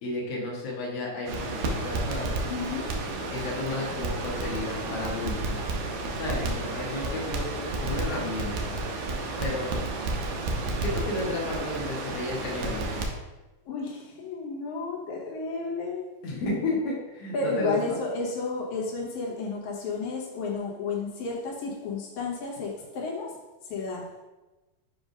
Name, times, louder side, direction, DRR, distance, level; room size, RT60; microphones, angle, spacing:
voice 1, 0.0-2.3 3.3-5.6 6.2-8.8 9.4-9.7 10.6-13.0 16.2-17.7, left 2 dB, 85° left, -3 dB, 1.3 m, -33 dB
Crackle, 1.3-13.1, right 2 dB, 85° right, 1.7 m, -31 dB
voice 2, 2.5-2.9 13.7-16.1 17.3-23.4 23.6-24.1, left 4 dB, 65° left, -4 dB, 2.0 m, -32 dB
7.5 x 2.6 x 5.2 m, 1.1 s
omnidirectional pair, 4.6 m